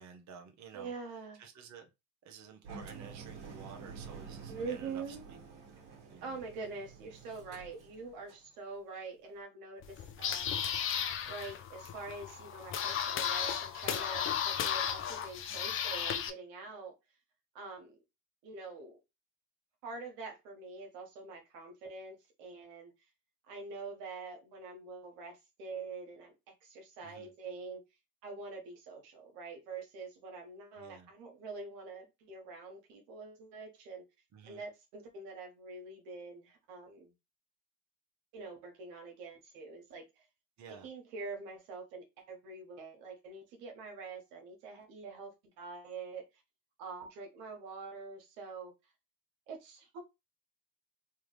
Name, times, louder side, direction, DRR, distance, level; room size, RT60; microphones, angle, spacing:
voice 1, 0.0-0.9 1.4-1.9 2.2-5.4 6.1-6.4 15.5-15.8 27.0-27.3 30.8-31.1 34.3-34.6 40.6-40.9, right 6 dB, 35° right, 0.9 m, -52 dB
voice 2, 0.7-1.4 4.5-5.3 6.2-10.5 11.3-16.9 17.5-18.0 18.4-19.0 19.8-22.9 23.5-27.8 28.2-34.0 34.4-37.1 38.3-40.2 40.7-46.3 46.8-48.7 49.5-50.0, right 4 dB, 80° right, 1.3 m, -45 dB
Engine, 2.6-8.5, right 5 dB, 55° right, 1.5 m, -49 dB
sound 1, 9.8-16.3, left 8 dB, 30° left, 0.4 m, -35 dB
3.4 x 2.4 x 3.2 m
supercardioid pair, 90°, 47 cm